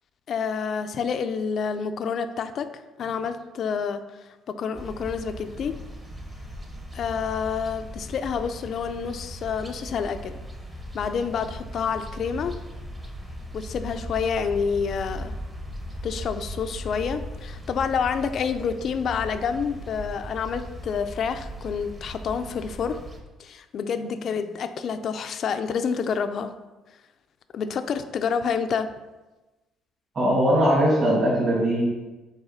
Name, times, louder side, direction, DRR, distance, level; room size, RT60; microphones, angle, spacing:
voice 1, 0.3-2.7 3.0-5.8 6.9-10.4 10.9-12.6 13.5-15.3 16.0-23.0 23.4-26.5 27.5-28.9, left 6 dB, 45° left, 9 dB, 0.4 m, -28 dB
swallows on the last day of july, 4.7-23.2, equal, 15° right, 0.9 m, -38 dB
voice 2, 30.1-31.8, equal, 40° right, -7 dB, 2.2 m, -20 dB
5.6 x 4.2 x 5.6 m, 1.1 s
cardioid pair, 150°, 0 cm